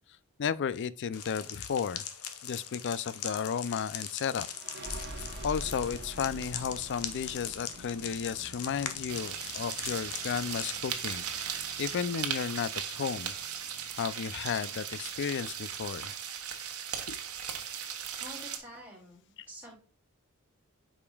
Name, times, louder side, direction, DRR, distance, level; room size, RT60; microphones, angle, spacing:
voice 1, 0.4-2.0 2.4-4.5 5.4-13.3 14.0-16.1 17.1-17.2, left 7 dB, 55° left, 0.4 m, -33 dB
sound 1, 1.1-10.8, left 8 dB, 75° left, 1.0 m, -41 dB
sound 2, 4.5-15.7, right 1 dB, 50° right, 1.0 m, -47 dB
sound 3, 9.1-18.6, right 8 dB, 80° right, 1.1 m, -37 dB
voice 2, 18.1-19.8, equal, 10° right, 2.9 m, -48 dB
8.4 x 5.1 x 2.3 m
head